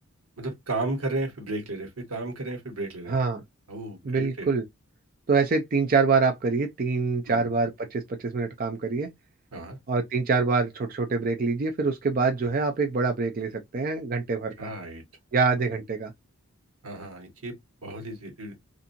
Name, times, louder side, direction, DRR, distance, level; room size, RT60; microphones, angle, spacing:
voice 1, 0.4-3.2 3.7-4.5 7.3-7.5 9.5-9.8 14.6-15.0 16.8-17.6 17.8-18.5, right 2 dB, 85° right, 1.2 m, -33 dB
voice 2, 3.1-3.4 4.0-4.6 5.3-9.1 9.9-14.7 15.3-16.1, right 4 dB, 40° right, 0.4 m, -25 dB
2.6 x 2.5 x 2.5 m
head